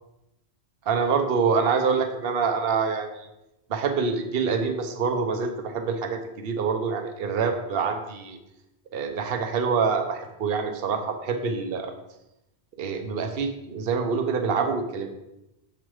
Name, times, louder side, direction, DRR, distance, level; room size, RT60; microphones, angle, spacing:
voice 1, 0.9-3.3 3.7-8.4 8.9-11.9 12.8-15.1, right 5 dB, 65° right, 6 dB, 1.0 m, -26 dB
7.5 x 4.9 x 4.7 m, 0.90 s
omnidirectional pair, 1.1 m